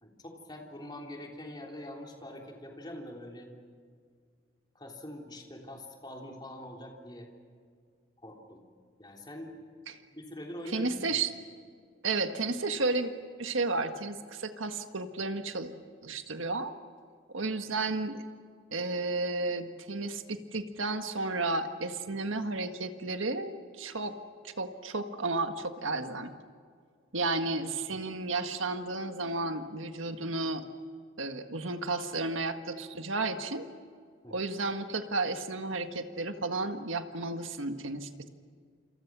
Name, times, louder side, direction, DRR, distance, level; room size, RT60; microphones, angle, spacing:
voice 1, 0.0-3.5 4.7-7.3 8.2-8.6 9.0-9.6 10.1-11.2 27.9-28.1 34.2-34.4, left 1 dB, 20° left, 0 dB, 3.4 m, -44 dB
voice 2, 10.7-11.3 12.0-13.1 13.4-15.7 16.0-16.7 17.3-18.2 18.7-24.2 24.4-26.3 27.1-30.6 31.2-33.7 34.3-38.3, right 3 dB, 80° right, 7 dB, 1.7 m, -32 dB
28.0 x 27.5 x 6.2 m, 2.1 s
head